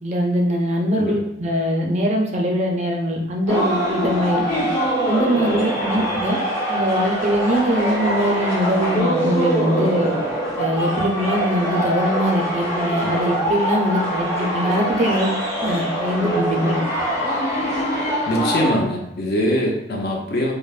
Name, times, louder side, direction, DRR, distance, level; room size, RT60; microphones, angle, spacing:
voice 1, 0.0-4.7 5.1-6.4 6.7-10.1 10.6-15.3 15.6-16.8, equal, 35° right, 1 dB, 0.5 m, -22 dB
sound 1, 3.5-18.7, equal, 15° left, 0.9 m, -23 dB
voice 2, 18.3-20.5, equal, 50° left, 0 dB, 0.6 m, -22 dB
5.2 x 2.1 x 2.4 m, 0.79 s
head